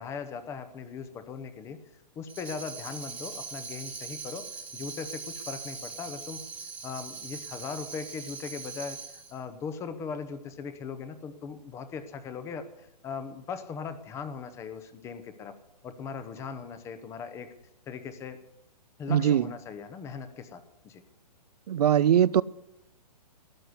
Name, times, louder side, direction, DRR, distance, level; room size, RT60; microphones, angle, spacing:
voice 1, 0.0-6.4 6.8-15.5 15.8-17.5 17.9-18.4 19.0-21.0, left 5 dB, 15° left, 0.8 m, -39 dB
Tambourine, 2.3-9.4, right 5 dB, 5° right, 1.4 m, -41 dB
voice 2, 19.1-19.4 21.7-22.4, right 10 dB, 65° right, 0.5 m, -21 dB
13.0 x 10.0 x 9.5 m
hypercardioid pair, 155°, 21 cm